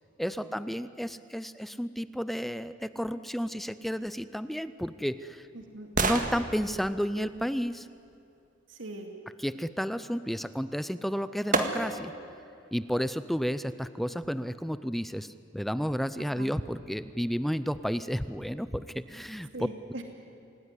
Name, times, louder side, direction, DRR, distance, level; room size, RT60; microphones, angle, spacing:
voice 1, 0.2-5.5 6.0-7.9 9.4-12.1 12.7-19.5, equal, ahead, 13 dB, 0.5 m, -32 dB
sound 1, 4.4-8.5 10.6-10.7 11.5-12.2 12.7-12.8, right 3 dB, 45° right, 1.9 m, -33 dB
voice 2, 5.5-5.9 8.7-9.1 16.2-16.5 19.5-20.0, right 1 dB, 85° right, 3 dB, 2.5 m, -41 dB
27.5 x 18.5 x 9.9 m, 2.5 s
head